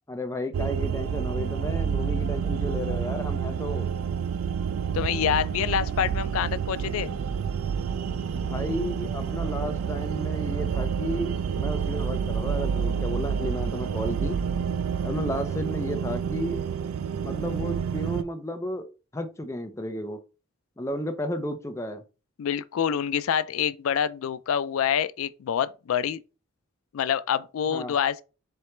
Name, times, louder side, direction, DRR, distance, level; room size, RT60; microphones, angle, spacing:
voice 1, 0.1-3.9 8.3-14.4 15.0-16.6 17.2-18.9 19.1-20.2 20.8-22.0 27.7-27.9, left 1 dB, 15° left, 0.4 m, -33 dB
sound 1, 0.5-18.2, right 7 dB, 80° right, 0.3 m, -29 dB
voice 2, 4.9-7.1 22.4-26.2 26.9-28.2, left 8 dB, 80° left, 0.3 m, -26 dB
4.5 x 2.9 x 3.2 m
head